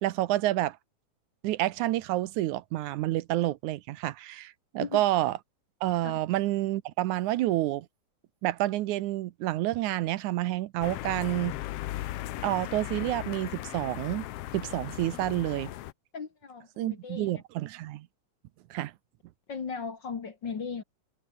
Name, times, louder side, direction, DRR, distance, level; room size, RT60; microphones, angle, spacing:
voice 1, 0.0-0.8 1.4-5.4 5.8-7.9 8.4-11.6 12.4-14.3 14.5-15.7 16.8-18.1 18.7-18.9, right 15 dB, 80° right, 2.2 m, -29 dB
sound 1, 10.8-15.9, left 15 dB, 75° left, 1.5 m, -37 dB
voice 2, 16.1-17.3 19.5-20.8, left 5 dB, 40° left, 2.1 m, -37 dB
omnidirectional pair, 3.5 m